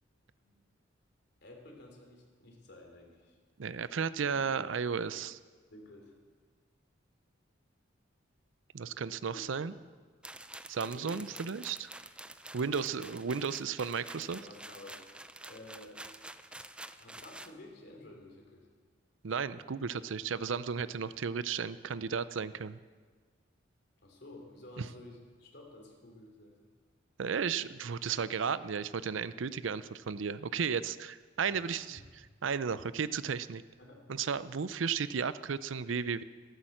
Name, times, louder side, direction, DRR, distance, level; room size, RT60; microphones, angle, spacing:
voice 1, 1.4-3.4 4.3-4.7 5.7-6.1 9.3-9.8 10.9-11.2 12.6-13.0 14.3-15.1 15.4-16.1 16.5-16.7 17.0-18.7 24.0-26.6 31.5-32.0 33.8-34.1, left 1 dB, 60° left, 1 dB, 3.1 m, -52 dB
voice 2, 3.6-5.4 8.7-9.7 10.7-11.9 12.5-14.4 19.2-22.8 24.8-24.9 27.2-32.0 32.4-33.6 34.1-36.2, right 6 dB, 75° right, 16 dB, 0.5 m, -34 dB
sound 1, 10.2-17.5, right 1 dB, 5° right, 0.4 m, -48 dB
13.0 x 11.5 x 7.8 m, 1.5 s
head